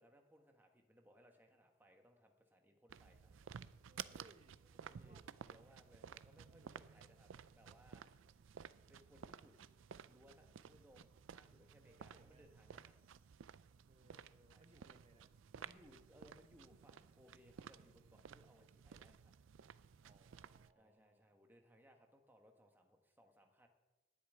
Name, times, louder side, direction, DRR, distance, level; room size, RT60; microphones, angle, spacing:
voice 1, 0.0-3.7 4.6-8.2 8.9-9.7 10.1-12.9 14.5-14.8 15.5-19.3 20.8-23.7, equal, 10° right, 3 dB, 1.3 m, -67 dB
sound 1, 2.9-20.7, right 7 dB, 85° right, 0.4 m, -55 dB
voice 2, 3.9-4.6 4.8-5.3 11.8-12.5 13.9-15.3 20.0-21.3, right 1 dB, 30° right, 7 dB, 0.9 m, -68 dB
9.9 x 7.9 x 9.3 m, 1.2 s
head